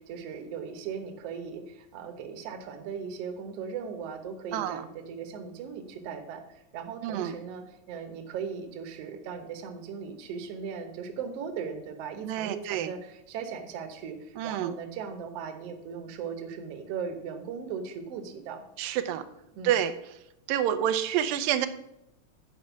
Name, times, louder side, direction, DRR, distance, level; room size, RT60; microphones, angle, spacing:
voice 1, 0.0-18.6 19.5-19.8, right 6 dB, 60° right, 6 dB, 1.7 m, -38 dB
voice 2, 4.5-4.8 7.0-7.3 12.2-12.9 14.4-14.7 18.8-19.2 19.6-19.9 20.5-21.7, right 10 dB, 90° right, 10 dB, 2.3 m, -28 dB
8.6 x 5.2 x 7.1 m, 0.81 s
omnidirectional pair, 3.9 m